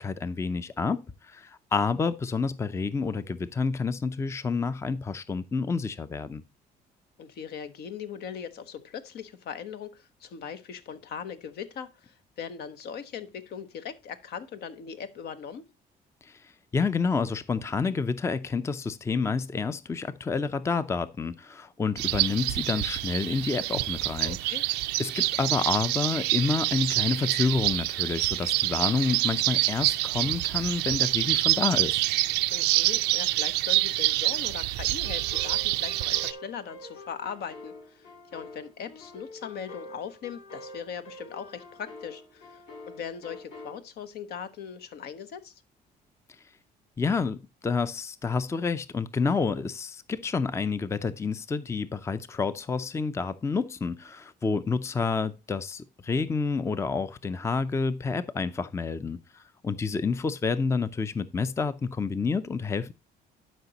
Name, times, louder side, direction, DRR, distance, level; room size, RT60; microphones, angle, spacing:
voice 1, 0.0-6.4 16.2-24.4 25.0-32.0 47.0-62.9, left 4 dB, 15° left, 0.5 m, -29 dB
voice 2, 7.2-15.6 24.2-24.7 32.5-45.6, left 7 dB, 70° left, 1.0 m, -40 dB
sound 1, 22.0-36.3, right 19 dB, 90° right, 0.4 m, -27 dB
sound 2, 35.0-43.8, left 1 dB, 85° left, 4.0 m, -46 dB
12.0 x 5.1 x 2.9 m
cardioid pair, 110°, 17 cm